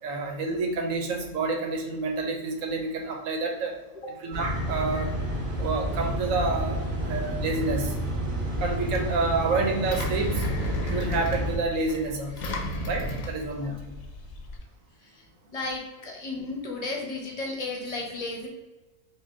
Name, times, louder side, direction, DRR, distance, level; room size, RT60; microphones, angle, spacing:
voice 1, 0.0-3.8 4.1-5.2 5.6-7.9 8.6-10.5 10.8-12.6 12.8-13.8, right 3 dB, 75° right, 2 dB, 1.1 m, -29 dB
sound 1, 4.3-11.6, equal, 35° right, 1.0 m, -30 dB
Engine, 8.5-14.6, left 1 dB, 90° left, 1.2 m, -34 dB
voice 2, 15.5-18.5, left 2 dB, 35° left, 0 dB, 0.9 m, -34 dB
5.6 x 2.3 x 3.6 m, 1.2 s
omnidirectional pair, 1.4 m